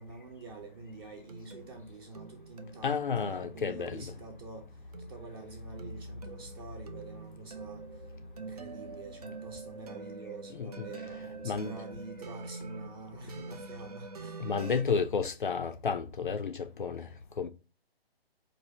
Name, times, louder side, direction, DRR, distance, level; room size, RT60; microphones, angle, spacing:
voice 1, 0.0-8.0 8.3-14.4 14.8-15.2, right 3 dB, 25° right, 0.9 m, -47 dB
sound 1, 0.6-14.8, right 4 dB, 40° right, 0.5 m, -46 dB
voice 2, 2.8-4.0 10.6-10.9 11.4-11.8 14.4-17.1 17.4-17.5, left 6 dB, 55° left, 0.5 m, -31 dB
4.7 x 2.6 x 4.0 m
figure-of-eight pair, 135°, 31 cm